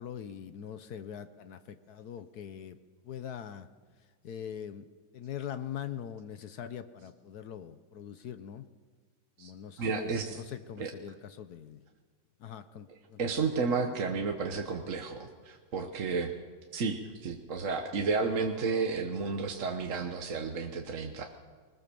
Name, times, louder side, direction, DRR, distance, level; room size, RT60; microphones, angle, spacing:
voice 1, 0.0-2.8 3.0-3.7 4.2-4.8 5.1-8.7 9.4-11.8 12.4-13.3, left 9 dB, 60° left, 12 dB, 1.2 m, -42 dB
voice 2, 9.8-10.4 10.8-10.9 12.9-16.3 16.7-21.2, right 4 dB, 45° right, 4 dB, 1.3 m, -32 dB
21.0 x 20.0 x 6.9 m, 1.5 s
omnidirectional pair, 2.1 m